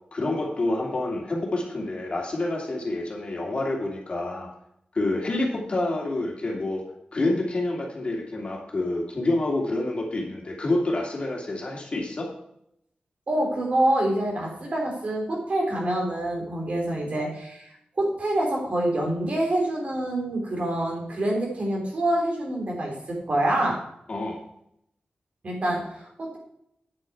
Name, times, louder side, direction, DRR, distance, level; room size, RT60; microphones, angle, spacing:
voice 1, 0.1-4.5 4.9-6.8 7.1-12.3 24.1-24.4, left 2 dB, 40° left, -1 dB, 2.8 m, -28 dB
voice 2, 13.3-17.7 18.0-23.8 25.4-26.4, right 1 dB, 50° right, -1 dB, 3.5 m, -26 dB
9.5 x 9.0 x 4.7 m, 0.74 s
wide cardioid pair, 135°, 3 cm